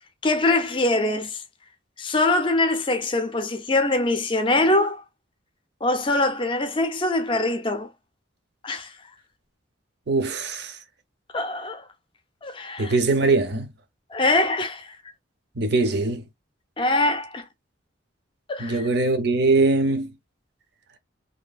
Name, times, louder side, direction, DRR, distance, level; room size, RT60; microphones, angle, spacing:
voice 1, 0.2-1.4 2.0-5.0 5.8-7.9 8.6-8.9 11.3-11.9 12.4-13.0 14.1-15.0 16.8-17.4 18.5-18.9, left 2 dB, 25° left, 0.5 m, -23 dB
voice 2, 10.1-10.8 12.8-13.7 15.6-16.2 18.6-20.1, right 3 dB, 55° right, 0.6 m, -22 dB
2.7 x 2.6 x 2.3 m
head